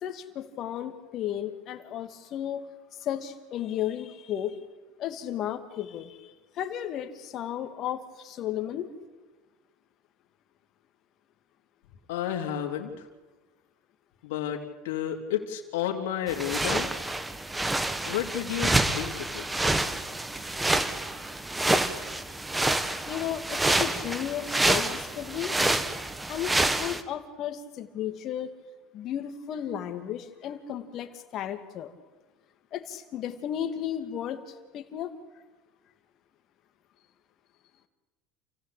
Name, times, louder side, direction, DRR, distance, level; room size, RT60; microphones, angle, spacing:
voice 1, 0.0-2.7 3.0-4.6 5.0-8.9 23.1-25.6 26.3-28.6 28.9-31.9 32.7-35.2, left 10 dB, 50° left, 7 dB, 2.7 m, -34 dB
voice 2, 12.1-13.1 14.2-16.9 18.1-19.6, left 10 dB, 85° left, 1 dB, 3.4 m, -31 dB
sound 1, 16.3-27.0, right 2 dB, 10° right, 1.7 m, -28 dB
29.0 x 16.5 x 8.7 m, 1.3 s
supercardioid pair, 115°, 0 cm